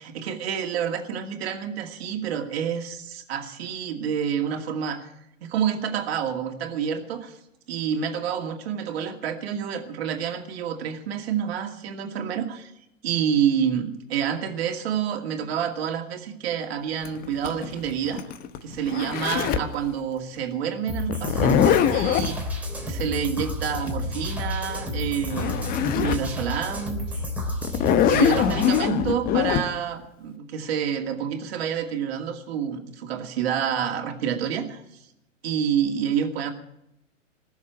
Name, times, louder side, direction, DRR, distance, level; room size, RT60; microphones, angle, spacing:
voice 1, 0.0-5.1 5.4-7.4 7.7-12.7 13.0-18.2 18.6-22.4 22.8-25.7 26.0-27.2 28.1-35.0 35.4-36.5, right 8 dB, 50° right, 3 dB, 2.4 m, -28 dB
Zipper (clothing), 17.0-19.7 21.1-22.4 24.9-25.0 25.3-26.3 26.8-26.9 27.6-29.6, left 8 dB, 25° left, 0.9 m, -22 dB
sound 1, 20.9-28.9, left 1 dB, 5° right, 3.6 m, -31 dB
19.0 x 7.2 x 9.2 m, 0.81 s
figure-of-eight pair, 115°, 38 cm